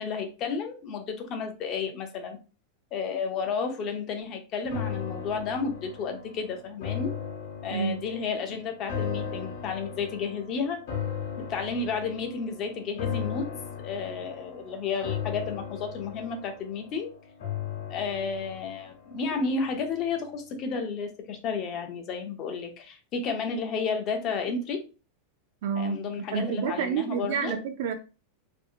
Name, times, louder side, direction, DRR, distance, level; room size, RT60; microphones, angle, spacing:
voice 1, 0.0-2.4 2.9-7.1 7.6-10.8 11.5-13.5 13.8-17.1 17.9-24.8 25.7-27.6, left 5 dB, 25° left, 0.5 m, -32 dB
sound 1, 4.7-20.0 20.4-20.5, left 8 dB, 65° left, 0.9 m, -37 dB
voice 2, 7.7-8.0 25.6-26.0 26.3-27.9, right 6 dB, 55° right, 0.3 m, -29 dB
2.6 x 2.4 x 2.6 m
supercardioid pair, 175°, 0 cm